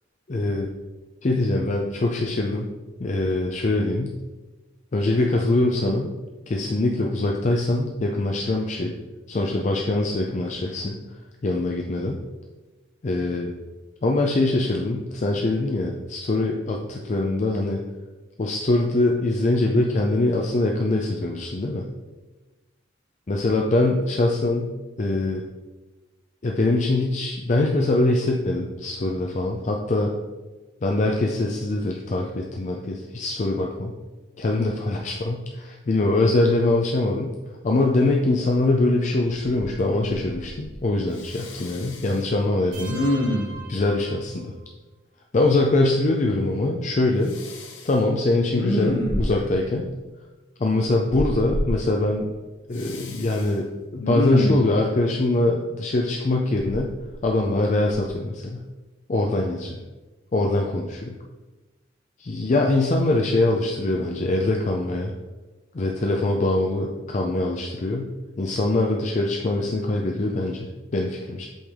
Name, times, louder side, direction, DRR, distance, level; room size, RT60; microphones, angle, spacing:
voice 1, 0.3-0.7 1.2-2.7 3.0-4.2 4.9-6.1 6.5-8.9 9.3-11.0 11.4-12.2 13.0-13.5 14.0-17.8 18.4-21.9 23.3-25.4 26.4-30.1 30.8-33.9 34.4-37.4 37.6-43.0 43.7-44.3 45.3-47.4 47.8-49.9 50.6-52.3 52.7-56.9 57.2-58.6 59.1-59.8 60.3-61.1 62.2-65.1 65.7-71.5, left 2 dB, 40° left, 1 dB, 0.4 m, -23 dB
Respiratory sounds, 39.8-39.9 40.1-40.8 41.2-42.2 42.9-43.7 47.3-47.9 48.5-49.5 51.1-51.7 52.8-53.5 54.0-54.7 56.5-57.5 57.9-58.1, left 1 dB, 85° left, 0.9 m, -27 dB
sound 1, 42.7-44.7, right 3 dB, 85° right, 1.5 m, -40 dB
7.7 x 3.3 x 3.6 m, 1.2 s
head